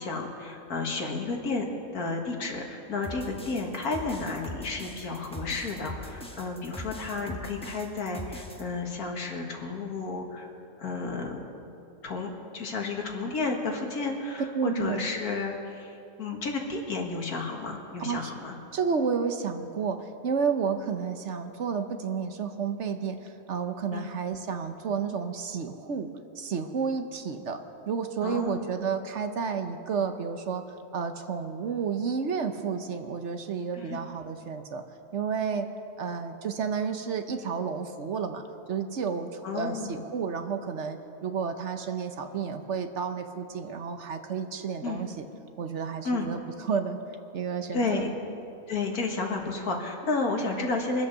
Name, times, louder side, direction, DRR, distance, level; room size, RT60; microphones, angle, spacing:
voice 1, 0.0-1.7 1.9-10.5 10.8-11.4 12.0-18.6 23.9-24.1 28.2-28.7 33.7-34.0 39.4-39.9 44.8-45.0 46.0-46.3 47.7-48.1 48.7-51.1, left 3 dB, 75° left, 1 dB, 2.2 m, -32 dB
sound 1, 3.0-8.6, equal, 5° left, 1.0 m, -41 dB
voice 2, 14.5-15.0 18.0-18.2 18.7-30.6 30.9-34.8 35.1-35.7 36.0-45.2 45.6-47.0 47.3-48.0, right 6 dB, 55° right, 7 dB, 1.1 m, -31 dB
23.5 x 8.1 x 6.8 m, 2.7 s
omnidirectional pair, 1.6 m